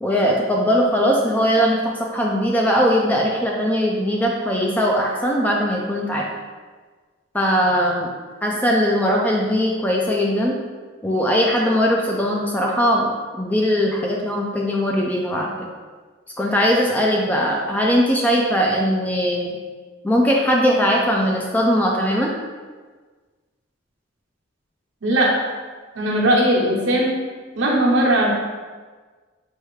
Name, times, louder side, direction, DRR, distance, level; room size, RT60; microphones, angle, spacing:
voice 1, 0.0-6.3 7.3-8.1 8.4-10.6 11.0-13.1 13.4-15.5 16.4-19.5 20.0-22.3, equal, 10° left, -2 dB, 0.3 m, -20 dB
voice 2, 25.0-25.3 25.9-27.1 27.6-28.3, right 1 dB, 70° right, -3 dB, 1.0 m, -18 dB
4.8 x 3.3 x 3.1 m, 1.4 s
head